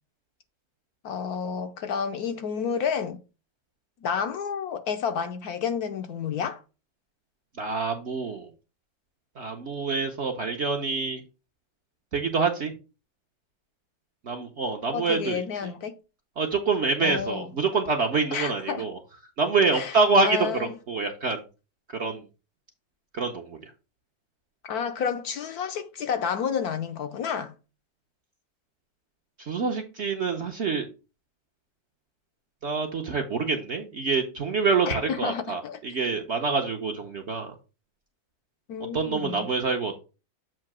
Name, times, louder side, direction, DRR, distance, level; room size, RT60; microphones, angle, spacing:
voice 1, 1.0-3.2 4.0-6.6 14.9-15.9 17.0-17.5 18.3-18.8 19.7-20.0 20.2-20.7 24.6-27.5 34.9-35.8 38.7-39.5, left 7 dB, 65° left, 1.0 m, -30 dB
voice 2, 7.6-8.5 9.4-11.2 12.1-12.7 14.2-15.7 16.4-19.0 19.4-21.4 21.9-22.2 23.1-23.6 29.4-30.9 32.6-37.5 38.9-40.0, right 4 dB, 50° right, 0.8 m, -26 dB
7.5 x 2.8 x 5.9 m
omnidirectional pair, 1.9 m